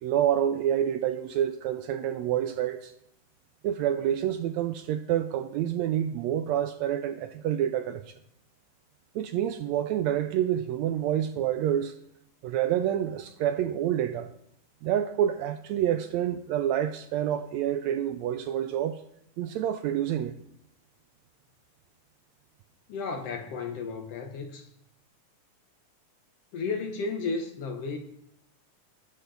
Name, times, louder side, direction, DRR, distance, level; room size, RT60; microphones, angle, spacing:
voice 1, 0.0-2.9 3.6-8.0 9.1-11.9 12.4-14.3 14.8-19.0 19.4-20.4, right 10 dB, 80° right, 1.6 m, -28 dB
voice 2, 22.9-24.7 26.5-28.0, left 4 dB, 70° left, 1.6 m, -33 dB
19.5 x 6.5 x 3.9 m
omnidirectional pair, 3.5 m